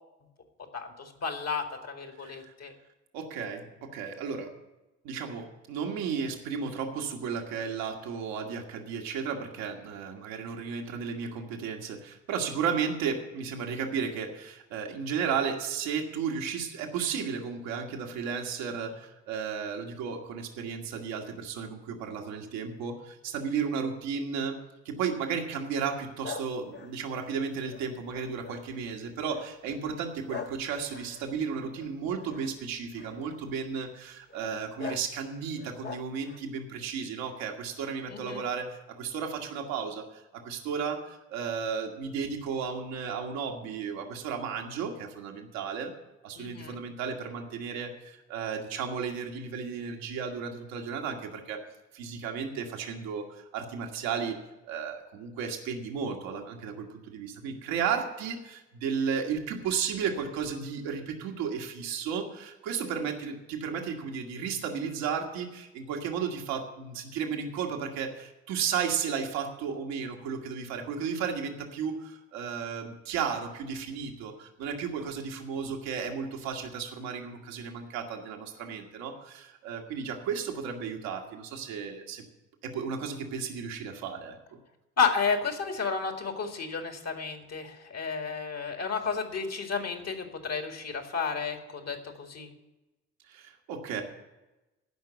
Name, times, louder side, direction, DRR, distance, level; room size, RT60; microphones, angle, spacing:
voice 1, 0.7-2.7 38.1-38.4 46.4-46.8 85.0-92.5, left 5 dB, 45° left, 5 dB, 2.2 m, -32 dB
voice 2, 2.2-2.5 3.1-4.5 5.0-45.9 46.2-51.6 51.9-54.4 54.6-82.2 82.6-84.6 93.3-94.0, right 6 dB, 70° right, 2 dB, 1.6 m, -34 dB
sound 1, 26.2-28.8 29.3-29.6 30.3-32.5 33.0-33.4 34.3-34.5 34.8-35.1 35.6-36.5, left 5 dB, 30° left, 1.0 m, -42 dB
15.5 x 5.8 x 8.0 m, 1.0 s
figure-of-eight pair, 40°, 36 cm